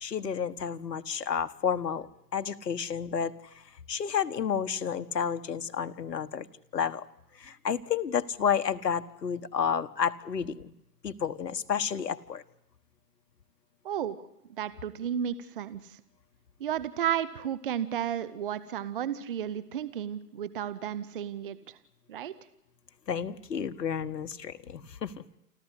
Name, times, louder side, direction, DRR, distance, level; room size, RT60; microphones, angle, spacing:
voice 1, 0.0-3.3 3.9-6.5 6.7-7.1 7.4-10.7 11.0-12.4 23.1-25.1, left 7 dB, 80° left, 9 dB, 1.5 m, -31 dB
voice 2, 13.8-14.2 14.6-16.0 16.6-21.8 22.1-22.3, right 9 dB, 35° right, 15 dB, 1.0 m, -33 dB
29.0 x 13.0 x 9.9 m, 0.82 s
hypercardioid pair, 155°, 48 cm